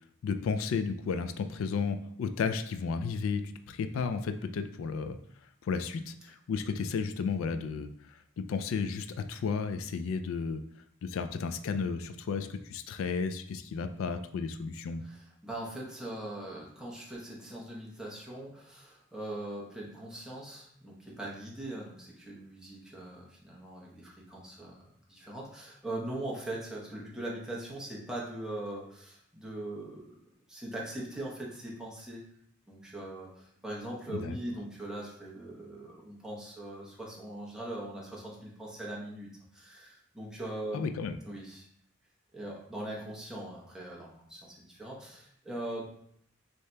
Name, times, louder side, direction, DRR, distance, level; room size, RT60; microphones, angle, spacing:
voice 1, 0.2-5.2 5.6-10.6 11.0-15.0 34.1-34.4 40.7-41.2, left 5 dB, 75° left, 9 dB, 0.3 m, -33 dB
voice 2, 15.0-24.7 25.1-30.2 30.5-32.2 32.7-40.9 41.2-41.7 42.3-45.8, right 1 dB, 5° right, -5 dB, 0.9 m, -41 dB
6.4 x 2.8 x 2.2 m, 0.67 s
head